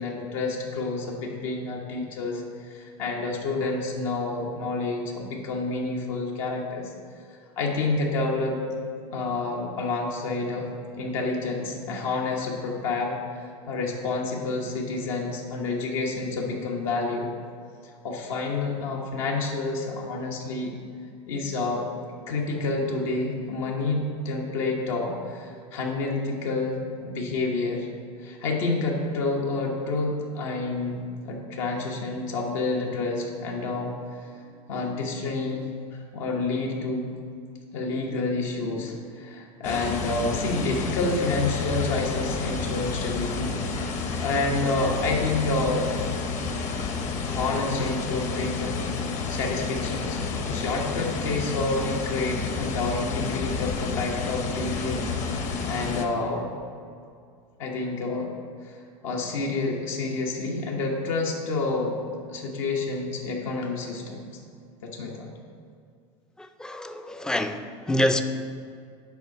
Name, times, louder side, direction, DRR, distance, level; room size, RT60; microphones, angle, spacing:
voice 1, 0.0-6.9 7.6-8.6 9.1-10.7 11.0-13.2 13.7-17.3 18.0-20.7 21.3-21.9 22.3-27.9 28.2-34.3 34.7-35.6 35.9-37.1 37.7-45.9 47.2-48.8 49.3-50.2 50.5-55.1 55.4-56.5 57.6-58.3 58.6-62.0 62.3-64.2 64.8-65.3, left 3 dB, 75° left, 1.1 m, -29 dB
sound 1, 39.6-56.0, left 4 dB, 45° left, 0.9 m, -30 dB
voice 2, 66.4-68.2, left 1 dB, 5° left, 0.4 m, -26 dB
7.1 x 4.8 x 5.3 m
supercardioid pair, 110°, 17 cm